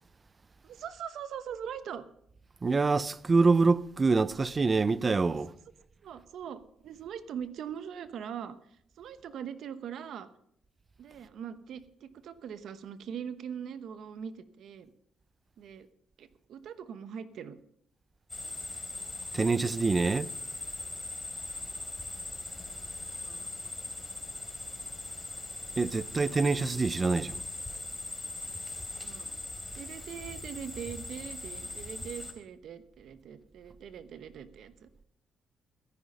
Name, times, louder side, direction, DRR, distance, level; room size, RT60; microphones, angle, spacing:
voice 1, 0.6-2.0 6.0-8.6 9.0-10.3 11.0-14.9 15.6-15.9 16.2-17.6 19.9-20.1 23.2-23.5 29.0-29.3 29.8-34.9, right 8 dB, 70° right, 1.0 m, -42 dB
voice 2, 2.6-5.5 19.3-20.3 25.8-27.4, right 4 dB, 30° right, 0.5 m, -25 dB
sound 1, 18.3-32.3, left 2 dB, 15° left, 3.2 m, -40 dB
14.0 x 10.5 x 5.4 m
cardioid pair, 90°, 0 cm